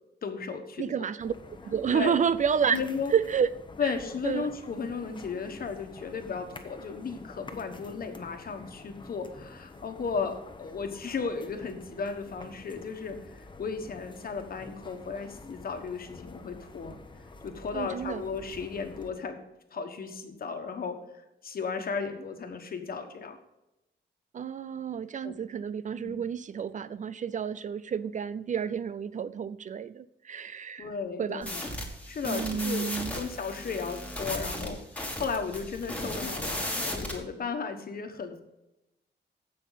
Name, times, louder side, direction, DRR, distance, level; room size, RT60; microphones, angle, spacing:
voice 1, 0.2-0.9 1.9-2.2 2.7-3.1 3.8-17.0 17.4-19.4 19.7-21.0 21.4-23.4 25.2-25.3 26.0-26.1 30.8-31.7 32.1-32.9 33.1-34.8 35.2-38.4, left 5 dB, 55° left, 6 dB, 1.4 m, -35 dB
voice 2, 0.8-1.3 1.6-2.8 3.1-3.5 3.8-3.9 4.2-4.5 17.7-18.2 24.3-30.9 31.2-31.5 32.3-33.1, right 7 dB, 45° right, 15 dB, 0.4 m, -30 dB
sound 1, 1.2-19.1, left 3 dB, 25° left, 0.9 m, -48 dB
sound 2, 31.4-37.2, left 1 dB, 5° left, 1.8 m, -36 dB
15.5 x 5.7 x 4.0 m, 0.91 s
wide cardioid pair, 140°, 19 cm